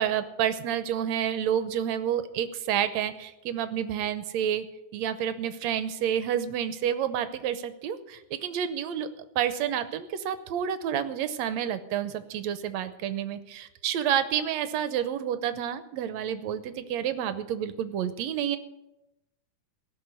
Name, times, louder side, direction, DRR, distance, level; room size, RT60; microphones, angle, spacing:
voice 1, 0.0-4.7 4.9-9.1 9.4-18.6, right 9 dB, 70° right, 11 dB, 1.8 m, -29 dB
17.5 x 6.2 x 9.5 m, 0.93 s
omnidirectional pair, 3.7 m